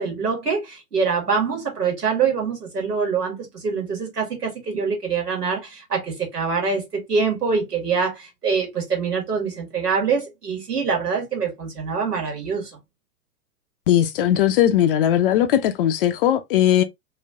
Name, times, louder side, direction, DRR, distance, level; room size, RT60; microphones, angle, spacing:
voice 1, 0.0-12.8, right 5 dB, 80° right, 2.0 m, -24 dB
voice 2, 13.9-16.8, left 11 dB, 35° left, 0.5 m, -18 dB
3.2 x 3.0 x 2.5 m
figure-of-eight pair, 100°, 47 cm